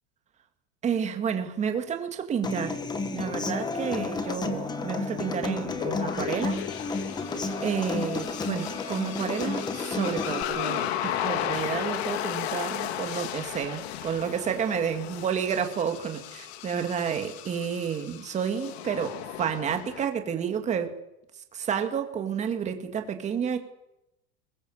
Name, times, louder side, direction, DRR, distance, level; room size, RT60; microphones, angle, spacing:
voice 1, 0.8-2.8 3.1-6.6 7.6-20.9 21.5-23.6, right 7 dB, 20° right, 5 dB, 2.2 m, -30 dB
Human voice / Acoustic guitar, 2.4-10.4, left 3 dB, 15° left, 1.5 m, -31 dB
sound 1, 5.6-20.1, left 11 dB, 80° left, 2.1 m, -35 dB
22.0 x 20.0 x 7.4 m, 0.89 s
supercardioid pair, 165°, 32 cm